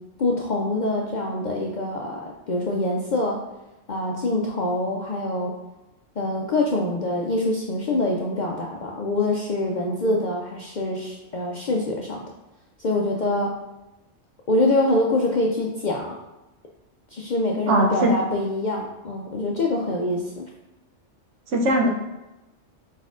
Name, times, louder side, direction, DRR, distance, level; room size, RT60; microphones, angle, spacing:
voice 1, 0.2-3.4 3.9-5.5 6.2-12.3 12.8-13.5 14.5-16.2 17.1-20.4, left 2 dB, 60° left, -1 dB, 0.5 m, -25 dB
voice 2, 17.7-18.1 21.5-21.9, right 1 dB, 75° right, 0 dB, 1.1 m, -19 dB
5.0 x 4.1 x 2.4 m, 0.98 s
omnidirectional pair, 1.3 m